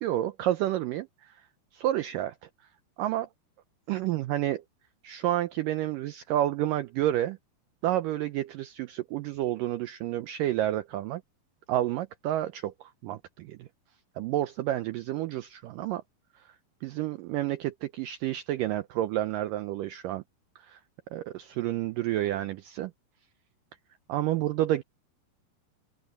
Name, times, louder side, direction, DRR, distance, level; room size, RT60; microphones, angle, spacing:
voice 1, 0.0-1.4 1.7-2.5 3.0-3.3 3.9-4.6 5.0-7.4 7.8-11.2 11.7-13.7 14.2-16.0 16.4-16.5 16.8-20.2 20.6-20.8 21.1-22.9 24.1-24.8, right 13 dB, 85° right, 1.9 m, -30 dB
open air
omnidirectional pair, 4.7 m